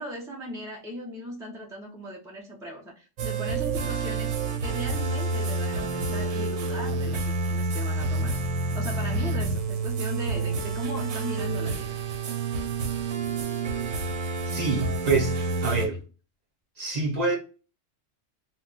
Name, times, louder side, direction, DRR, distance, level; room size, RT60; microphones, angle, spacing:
voice 1, 0.0-8.4 8.7-12.0, equal, 5° right, 0.3 m, -38 dB
sound 1, 3.2-15.9, right 3 dB, 85° right, 0.9 m, -28 dB
voice 2, 14.5-16.0 16.8-17.4, right 3 dB, 40° right, 0.8 m, -26 dB
2.3 x 2.2 x 3.7 m
omnidirectional pair, 1.3 m